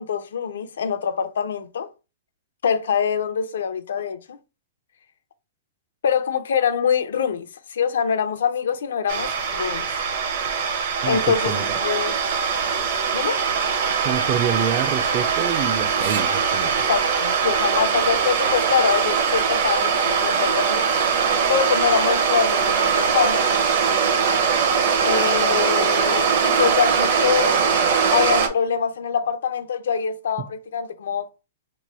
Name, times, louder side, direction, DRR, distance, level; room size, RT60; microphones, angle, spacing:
voice 1, 0.0-1.9 2.6-4.4 6.0-10.3 11.1-12.1 13.1-13.4 16.6-20.9 21.5-23.6 25.0-27.6 28.1-31.3, left 7 dB, 80° left, 0.5 m, -24 dB
sound 1, 9.1-28.5, right 6 dB, 50° right, 0.7 m, -21 dB
voice 2, 11.0-11.8 14.0-16.8, right 9 dB, 30° right, 0.3 m, -27 dB
sound 2, 13.5-18.8, right 5 dB, 75° right, 1.2 m, -39 dB
3.0 x 2.2 x 4.1 m
hypercardioid pair, 160°, 0 cm